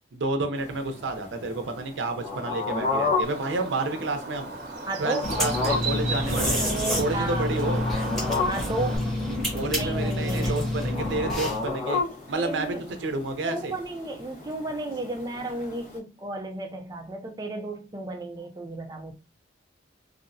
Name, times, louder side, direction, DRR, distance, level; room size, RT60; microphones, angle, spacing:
voice 1, 0.1-4.5 5.0-7.8 9.5-12.0 12.3-12.8 13.0-13.8, right 2 dB, 85° right, 0.5 m, -30 dB
sound 1, 0.6-16.0, left 4 dB, 45° left, 0.9 m, -33 dB
Bird, 3.2-9.0, right 3 dB, 55° right, 0.8 m, -36 dB
voice 2, 4.9-5.3 6.6-7.5 8.4-9.1 9.8-10.6 12.4-12.8 13.4-19.1, right 2 dB, 20° right, 0.4 m, -33 dB
sound 2, 5.2-11.7, left 1 dB, ahead, 0.8 m, -28 dB
2.6 x 2.0 x 2.6 m
head